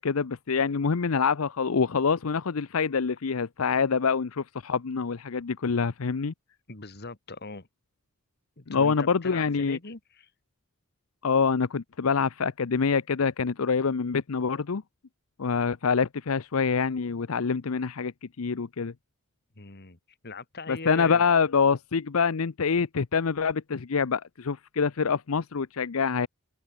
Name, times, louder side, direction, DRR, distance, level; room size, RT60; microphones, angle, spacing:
voice 1, 0.0-6.3 8.7-9.8 11.2-14.8 15.4-18.1 18.4-18.9 20.7-26.3, left 5 dB, 80° left, 0.7 m, -26 dB
voice 2, 6.7-7.7 8.6-10.3 19.6-21.2, left 3 dB, 50° left, 2.0 m, -41 dB
open air
head